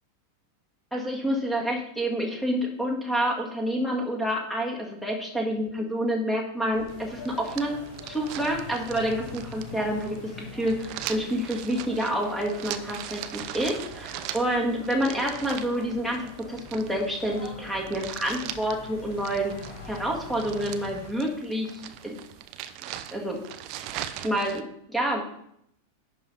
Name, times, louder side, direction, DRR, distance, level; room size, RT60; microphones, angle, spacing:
voice 1, 0.9-7.7 8.1-19.5 19.9-22.1 23.1-23.4 24.2-25.2, equal, ahead, 0 dB, 1.9 m, -28 dB
sound 1, 6.7-21.1, left 3 dB, 50° left, 2.1 m, -44 dB
sound 2, 6.9-24.6, right 11 dB, 40° right, 0.6 m, -41 dB
11.0 x 4.3 x 5.5 m, 0.73 s
figure-of-eight pair, 90°, 0 cm